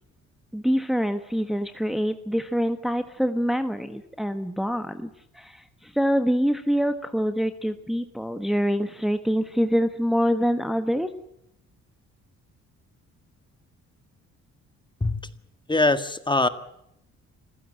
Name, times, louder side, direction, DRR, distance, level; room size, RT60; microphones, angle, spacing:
voice 1, 0.5-11.1, equal, ahead, 8 dB, 1.4 m, -25 dB
voice 2, 15.7-16.5, left 2 dB, 15° left, 10 dB, 1.7 m, -22 dB
26.0 x 16.0 x 7.7 m, 0.81 s
cardioid pair, 90°, 30 cm